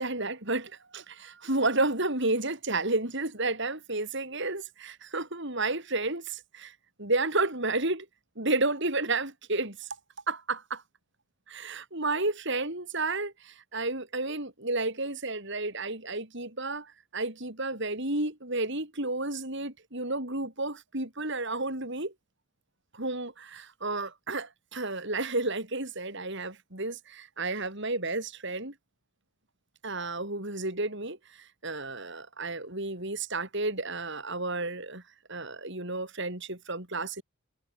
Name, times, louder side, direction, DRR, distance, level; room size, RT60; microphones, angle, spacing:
voice 1, 0.0-8.1 8.4-9.9 10.3-10.8 11.5-22.1 22.9-28.7 29.8-35.0 35.3-37.2, right 2 dB, 55° right, 5.1 m, -31 dB
head